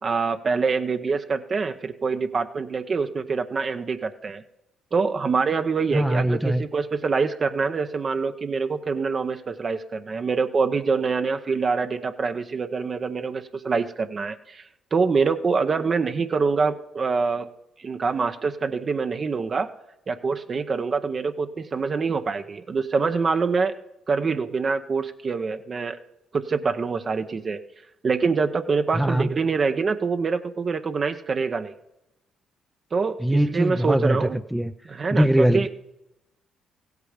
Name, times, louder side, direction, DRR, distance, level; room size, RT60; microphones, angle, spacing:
voice 1, 0.0-4.4 4.9-17.5 17.8-19.7 20.1-23.8 24.1-26.0 26.3-27.6 28.0-31.8 32.9-34.4 34.9-35.7, right 4 dB, 40° right, 8 dB, 0.7 m, -25 dB
voice 2, 5.9-6.6 28.9-29.3 33.2-34.7 35.1-35.7, right 1 dB, 5° right, 9 dB, 0.5 m, -21 dB
15.5 x 8.3 x 5.0 m, 0.89 s
supercardioid pair, 70°, 0 cm